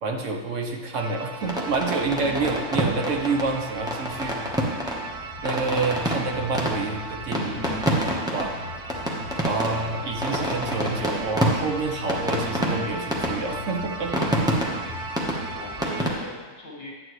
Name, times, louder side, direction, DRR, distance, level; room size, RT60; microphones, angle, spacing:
voice 1, 0.0-4.4 5.4-7.6 8.3-8.5 9.5-14.5, right 3 dB, 70° right, 2 dB, 1.2 m, -28 dB
sound 1, 1.0-16.1, right 3 dB, 55° right, 0.7 m, -37 dB
sound 2, 1.4-16.1, equal, 5° right, 1.0 m, -28 dB
voice 2, 7.4-8.0 15.5-16.9, left 1 dB, 45° left, -3 dB, 2.0 m, -38 dB
9.6 x 8.9 x 3.2 m, 1.4 s
omnidirectional pair, 1.4 m